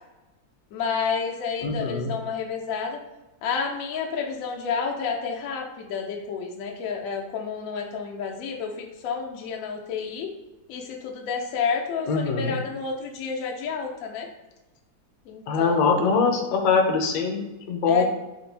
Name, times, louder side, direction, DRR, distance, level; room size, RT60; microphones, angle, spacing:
voice 1, 0.7-3.0 3.4-10.3 10.7-14.3 15.3-16.1 17.9-18.0, left 6 dB, 85° left, 1 dB, 0.7 m, -30 dB
voice 2, 1.6-2.1 12.1-12.6 15.5-18.0, left 4 dB, 70° left, 3 dB, 1.1 m, -23 dB
4.3 x 2.5 x 3.2 m, 1.1 s
omnidirectional pair, 2.1 m